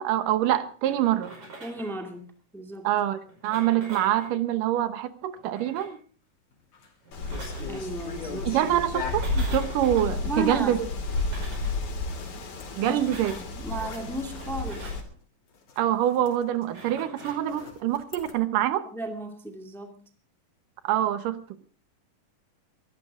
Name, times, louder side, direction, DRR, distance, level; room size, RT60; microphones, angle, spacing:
voice 1, 0.0-1.4 2.8-6.0 8.4-10.9 12.7-13.4 15.8-18.9 20.8-21.4, right 12 dB, 80° right, 12 dB, 2.6 m, -25 dB
sound 1, 0.8-2.1 3.2-4.4 5.3-6.0 7.0-7.8 9.0-10.1 11.0-11.8 12.8-13.5 14.3-15.1 16.6-17.5, right 2 dB, 60° right, 6.6 m, -45 dB
voice 2, 1.6-2.2 2.5-2.9 7.6-8.6 10.2-10.8 12.8-13.0 13.3-14.9 18.9-20.0, right 1 dB, ahead, 4 dB, 1.7 m, -34 dB
sound 2, 6.5-6.9 7.3-9.7 12.1-14.7 15.1-15.2 15.5-18.3, left 6 dB, 65° left, 4.4 m, -42 dB
Wind, 7.1-15.0, left 3 dB, 80° left, 4.6 m, -32 dB
23.5 x 13.0 x 3.7 m, 0.41 s
omnidirectional pair, 3.8 m